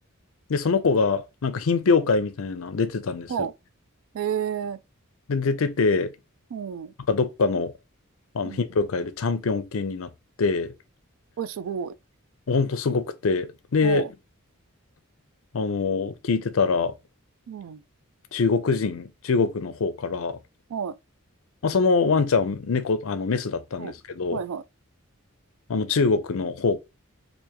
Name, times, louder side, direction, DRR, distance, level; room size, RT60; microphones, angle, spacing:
voice 1, 0.5-3.5 5.3-6.1 7.1-7.7 8.3-10.1 10.4-10.7 12.5-14.0 15.5-16.9 18.3-20.4 21.6-24.4 25.7-26.8, left 4 dB, 65° left, 0.5 m, -24 dB
voice 2, 4.1-4.8 6.5-6.9 8.4-8.6 11.4-11.9 13.8-14.1 17.5-17.8 20.7-20.9 23.8-23.9 24.3-24.6, right 7 dB, 65° right, 0.3 m, -30 dB
3.4 x 2.6 x 2.9 m
head